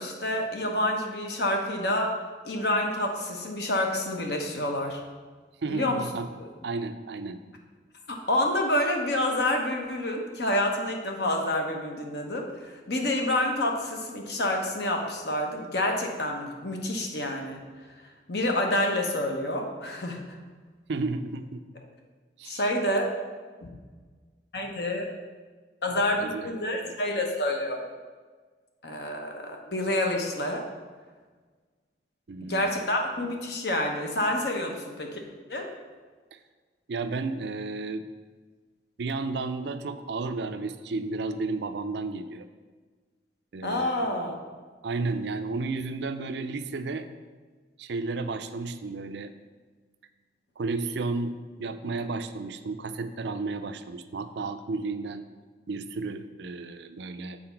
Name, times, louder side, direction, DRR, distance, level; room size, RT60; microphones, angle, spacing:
voice 1, 0.0-2.1 2.4-5.0 5.7-6.0 8.1-17.6 18.3-20.2 22.4-23.1 23.6-23.7 24.5-25.1 25.8-27.9 28.8-30.7 32.4-35.2 35.5-35.7 43.6-44.4, left 1 dB, 60° left, 2 dB, 1.0 m, -28 dB
voice 2, 5.6-6.3 6.6-7.4 20.9-21.6 22.4-22.6 26.2-26.5 26.8-26.9 32.3-32.7 36.3-36.4 36.9-38.1 39.0-42.5 43.5-44.2 44.8-47.1 47.8-49.3 50.6-55.3 55.7-57.4, right 3 dB, 65° right, 10 dB, 0.4 m, -32 dB
7.8 x 4.1 x 5.8 m, 1.4 s
head